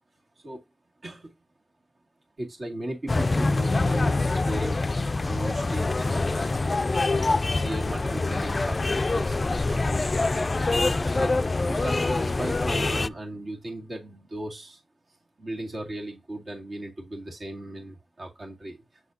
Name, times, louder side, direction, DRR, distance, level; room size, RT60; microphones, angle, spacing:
voice 1, 1.0-1.3 2.4-4.8 5.2-7.0 7.4-10.5 11.0-11.4 11.7-14.8 15.4-19.0, right 1 dB, 60° right, 2.1 m, -37 dB
sound 1, 3.1-13.1, left 3 dB, 40° left, 0.3 m, -25 dB
8.5 x 4.2 x 2.7 m
wide cardioid pair, 80°, 0 cm